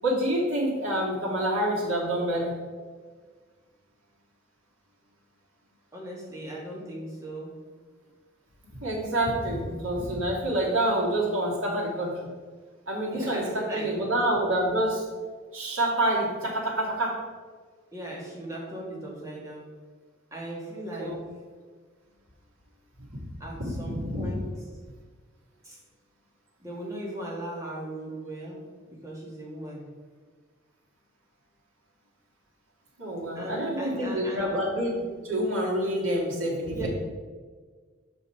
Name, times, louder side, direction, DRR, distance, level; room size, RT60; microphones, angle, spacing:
voice 1, 0.0-2.6 8.8-12.1 12.9-15.1 15.5-17.2 21.0-21.2 23.0-23.2 23.8-24.4 33.0-36.9, right 1 dB, 80° right, -4 dB, 2.4 m, -27 dB
voice 2, 5.9-7.6 13.1-13.9 17.9-19.6 20.3-21.1 23.4-24.5 25.6-25.8 26.6-28.7 29.0-29.9 33.3-34.5 36.7-36.9, right 1 dB, 15° right, -4 dB, 1.9 m, -38 dB
7.2 x 5.5 x 4.9 m, 1.5 s
head